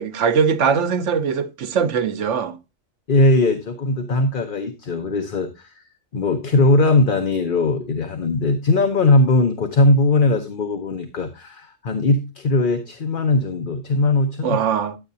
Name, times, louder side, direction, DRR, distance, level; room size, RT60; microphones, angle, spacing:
voice 1, 0.0-2.6 14.4-15.0, right 6 dB, 75° right, 1.1 m, -21 dB
voice 2, 3.1-5.7 6.1-14.6, left 2 dB, 45° left, 1.0 m, -19 dB
10.5 x 9.0 x 2.7 m
omnidirectional pair, 1.3 m